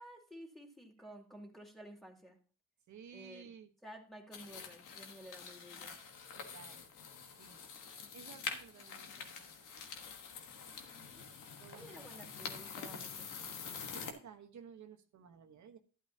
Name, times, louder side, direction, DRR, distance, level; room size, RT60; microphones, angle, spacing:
voice 1, 0.0-2.4 3.1-3.5 3.8-5.9 10.7-11.3 11.7-13.3, equal, ahead, 2 dB, 2.5 m, -53 dB
voice 2, 2.9-3.7 6.3-6.9 7.4-7.6 8.1-9.5 11.6-12.0 13.9-15.8, right 7 dB, 70° right, 5 dB, 1.2 m, -55 dB
sound 1, 4.3-14.1, left 6 dB, 85° left, 1.4 m, -46 dB
12.0 x 8.4 x 2.8 m, 0.39 s
cardioid pair, 70°, 30 cm